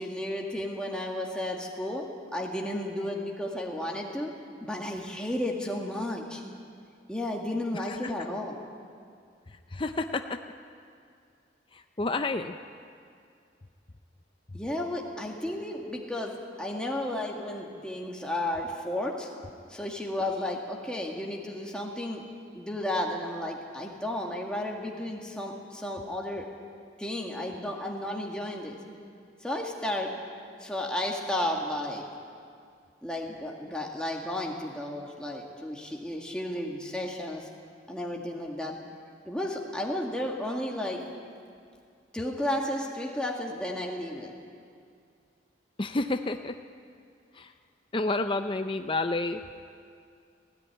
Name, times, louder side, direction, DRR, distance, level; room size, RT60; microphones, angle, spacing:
voice 1, 0.0-2.1 2.3-4.3 4.6-6.4 7.1-8.6 14.5-19.3 19.7-22.2 22.5-26.5 27.0-28.8 29.4-30.1 30.6-32.0 33.0-37.5 37.9-38.8 39.3-41.0 42.1-44.3, left 1 dB, 5° left, -1 dB, 2.1 m, -33 dB
voice 2, 7.7-8.1 9.7-10.4 11.7-12.6 45.8-46.5 47.3-47.5 47.9-49.4, left 2 dB, 25° left, 7 dB, 0.5 m, -30 dB
17.5 x 17.0 x 9.8 m, 2.3 s
head